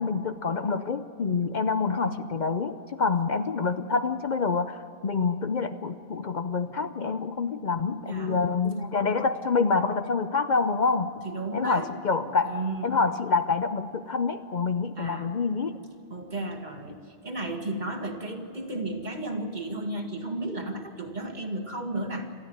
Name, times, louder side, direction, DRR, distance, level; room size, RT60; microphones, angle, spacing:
voice 1, 0.0-11.1 11.5-12.6 12.8-15.8, left 4 dB, 50° left, 10 dB, 0.8 m, -27 dB
voice 2, 8.1-8.4 11.2-11.9 12.4-13.0 14.9-15.3 16.1-22.3, right 2 dB, 45° right, 4 dB, 2.0 m, -33 dB
29.0 x 13.0 x 9.2 m, 2.7 s
omnidirectional pair, 1.0 m